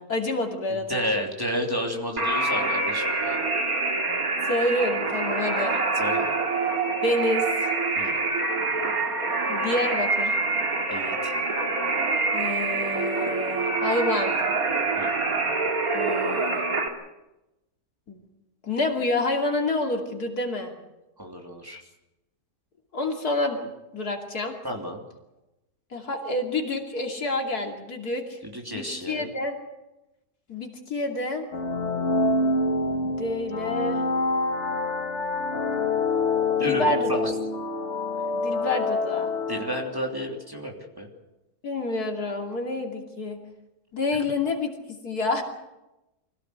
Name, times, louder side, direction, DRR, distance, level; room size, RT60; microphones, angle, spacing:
voice 1, 0.0-1.3 4.4-5.8 7.0-7.7 9.5-10.4 12.3-14.4 15.9-16.6 18.1-18.3 18.6-20.7 22.9-24.5 25.9-28.4 28.7-29.6 30.5-31.5 33.0-34.0 36.6-37.3 38.3-39.3 41.6-43.4 43.9-45.4, left 2 dB, 75° left, 2 dB, 3.3 m, -28 dB
voice 2, 0.9-3.5 5.9-6.4 7.9-8.2 10.9-11.4 15.0-15.1 21.2-21.8 24.6-25.0 28.4-29.3 36.6-37.3 39.5-41.1, equal, 15° right, 0 dB, 3.0 m, -31 dB
sound 1, 2.2-16.9, right 3 dB, 65° right, 2.8 m, -26 dB
sound 2, 31.5-40.1, left 3 dB, 45° left, 2.0 m, -26 dB
25.0 x 16.5 x 8.1 m, 0.96 s
omnidirectional pair, 1.6 m